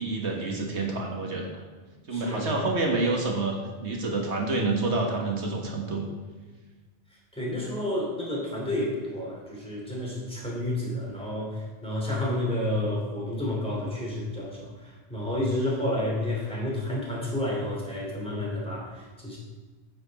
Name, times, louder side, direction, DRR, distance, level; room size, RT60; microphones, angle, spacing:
voice 1, 0.0-1.6 2.1-3.5 3.8-6.0, right 3 dB, 90° right, 0 dB, 1.7 m, -28 dB
voice 2, 2.1-2.7 7.3-19.4, left 1 dB, 5° left, -4 dB, 2.9 m, -30 dB
9.7 x 7.9 x 4.1 m, 1.3 s
omnidirectional pair, 1.1 m